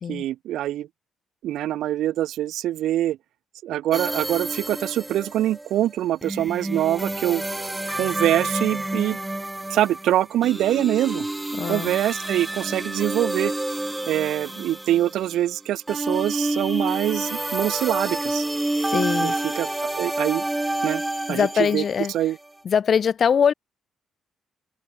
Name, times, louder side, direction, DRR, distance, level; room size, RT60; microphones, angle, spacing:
voice 1, 0.1-0.9 1.4-3.2 3.6-7.4 8.0-9.2 9.7-11.3 11.7-13.5 14.1-18.5 19.2-19.7 20.0-20.4 20.8-21.0 21.3-21.8 22.1-22.4, right 13 dB, 80° right, 0.4 m, -24 dB
sound 1, 3.9-15.6 15.9-22.1, right 1 dB, 10° right, 0.4 m, -29 dB
voice 2, 11.5-11.9 18.8-19.4 21.3-22.1 22.6-23.5, left 7 dB, 50° left, 0.6 m, -22 dB
cardioid pair, 90°, 0 cm